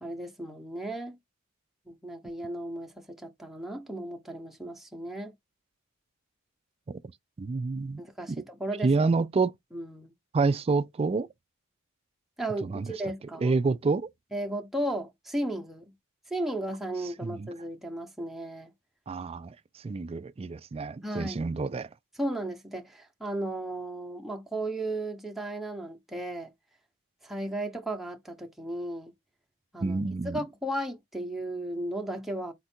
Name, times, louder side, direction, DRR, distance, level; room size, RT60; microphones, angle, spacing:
voice 1, 0.0-1.2 1.9-5.3 8.0-9.1 9.7-10.1 12.4-13.5 14.3-15.9 16.3-18.7 21.0-21.5 22.2-26.5 27.2-29.1 29.7-30.0 30.2-32.5, right 1 dB, ahead, 0.7 m, -35 dB
voice 2, 7.4-8.0 8.3-8.4 8.8-9.5 10.3-11.3 12.6-12.9 13.4-14.1 17.2-17.5 19.1-19.5 19.8-21.9 29.8-30.4, right 4 dB, 25° right, 0.3 m, -28 dB
4.4 x 2.4 x 4.3 m
head